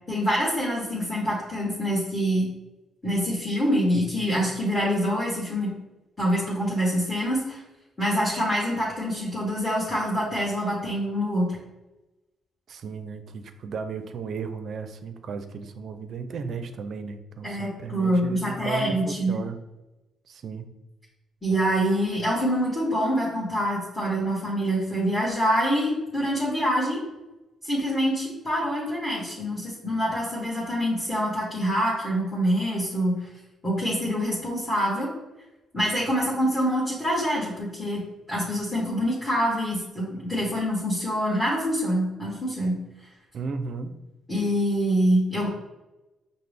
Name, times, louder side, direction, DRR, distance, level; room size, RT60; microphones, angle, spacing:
voice 1, 0.1-2.5 3.0-5.7 6.2-7.6 8.0-11.6 17.4-19.4 21.4-27.0 27.6-33.3 33.6-35.1 35.7-38.0 38.3-42.7 44.3-45.5, equal, 10° left, -8 dB, 1.4 m, -25 dB
voice 2, 12.7-19.6 20.3-20.7 43.3-43.9, right 5 dB, 60° right, 8 dB, 0.4 m, -35 dB
5.6 x 2.0 x 3.3 m, 1.0 s
cardioid pair, 90°, 0 cm